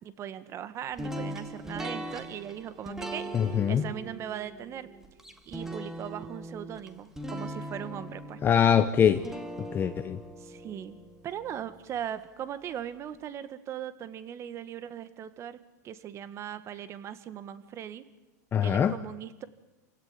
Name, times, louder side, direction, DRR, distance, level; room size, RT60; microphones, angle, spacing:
voice 1, 0.0-4.9 5.4-8.4 10.4-11.0 11.2-15.6 15.8-18.0 18.6-19.5, right 10 dB, 30° right, 1.7 m, -39 dB
sound 1, 1.0-12.0, right 1 dB, 5° right, 2.2 m, -40 dB
voice 2, 3.3-3.8 8.4-9.2 9.7-10.2 18.5-18.9, left 8 dB, 20° left, 1.0 m, -23 dB
28.5 x 17.0 x 9.9 m
supercardioid pair, 135°, 10 cm